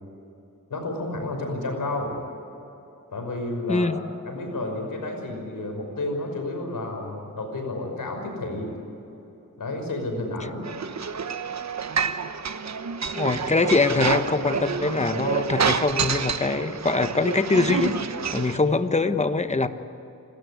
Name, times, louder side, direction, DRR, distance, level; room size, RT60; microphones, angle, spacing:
voice 1, 0.7-2.2 3.1-3.9 4.2-8.7 9.6-10.6, left 2 dB, 80° left, 3 dB, 5.7 m, -31 dB
voice 2, 3.7-4.0 13.1-17.9 18.3-19.7, left 3 dB, 20° left, 9 dB, 1.2 m, -23 dB
sound 1, 10.6-18.6, right 6 dB, 55° right, 1.2 m, -28 dB
28.5 x 13.5 x 9.6 m, 3.0 s
cardioid pair, 65°, 32 cm